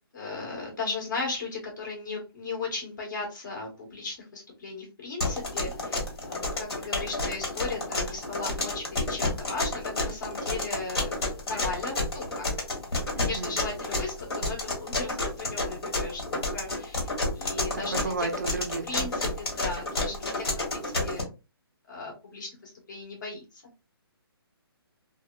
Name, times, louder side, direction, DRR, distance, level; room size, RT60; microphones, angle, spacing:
voice 1, 0.1-11.2 11.5-12.5 13.2-17.1 17.3-18.3 18.9-21.3 21.9-23.6, left 3 dB, 50° left, -2 dB, 1.4 m, -36 dB
sound 1, 5.2-21.2, left 2 dB, 70° left, 1.3 m, -30 dB
voice 2, 13.2-13.6 17.9-19.1, right 3 dB, 45° right, 7 dB, 0.4 m, -32 dB
3.0 x 2.1 x 2.3 m, 0.29 s
hypercardioid pair, 175°, 13 cm